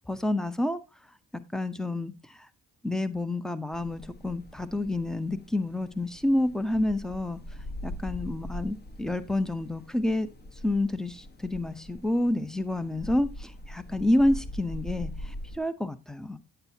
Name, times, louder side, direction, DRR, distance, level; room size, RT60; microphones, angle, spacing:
voice 1, 0.1-0.8 1.3-2.1 2.8-7.4 7.8-10.3 10.6-16.4, left 1 dB, ahead, 13 dB, 0.7 m, -28 dB
sound 1, 3.7-15.6, left 1 dB, 35° left, 1.3 m, -42 dB
8.9 x 8.9 x 2.8 m, 0.27 s
cardioid pair, 90°, 30 cm